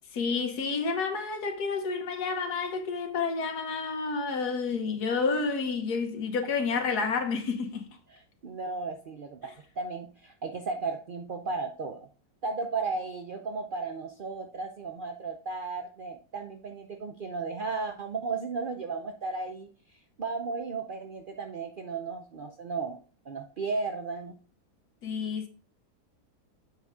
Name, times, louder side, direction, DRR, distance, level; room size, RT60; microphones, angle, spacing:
voice 1, 0.1-7.9 25.0-25.5, left 4 dB, 70° left, 1.7 m, -30 dB
voice 2, 8.1-12.1 12.4-23.0 23.3-24.4, right 4 dB, 75° right, 0.4 m, -35 dB
7.7 x 5.6 x 3.6 m
omnidirectional pair, 1.7 m